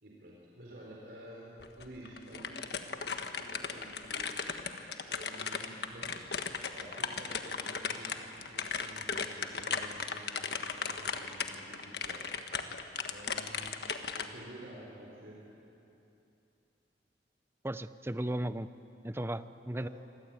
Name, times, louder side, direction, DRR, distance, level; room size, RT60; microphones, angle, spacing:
voice 1, 0.0-4.4 5.0-6.4 6.7-12.3 13.1-13.9 14.1-15.5 19.8-19.9, right 1 dB, 65° right, -3 dB, 4.6 m, -51 dB
sound 1, 1.6-14.3, left 5 dB, 70° left, 1.5 m, -37 dB
voice 2, 17.6-18.7 19.0-19.9, right 1 dB, 15° right, 12 dB, 0.6 m, -35 dB
26.5 x 23.0 x 9.1 m, 2.8 s
head